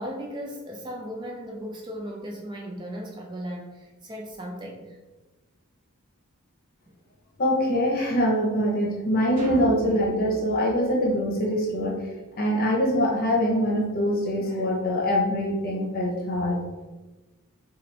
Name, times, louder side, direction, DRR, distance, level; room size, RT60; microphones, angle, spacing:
voice 1, 0.0-5.0, equal, 20° right, 1 dB, 0.3 m, -36 dB
voice 2, 7.4-12.0 12.4-16.6, equal, 40° left, -1 dB, 0.7 m, -24 dB
sound 1, 9.4-11.9, right 1 dB, 40° right, 1.3 m, -39 dB
4.2 x 2.5 x 3.2 m, 1.2 s
head